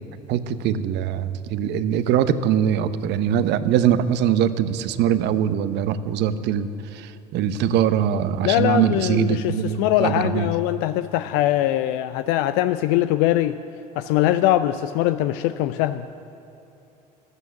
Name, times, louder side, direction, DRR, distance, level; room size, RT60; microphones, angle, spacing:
voice 1, 0.3-10.5, right 9 dB, 55° right, 13 dB, 0.9 m, -22 dB
voice 2, 8.4-13.6 14.0-16.0, left 14 dB, 65° left, 11 dB, 0.5 m, -22 dB
15.0 x 13.0 x 7.1 m, 2.9 s
hypercardioid pair, 65°, 21 cm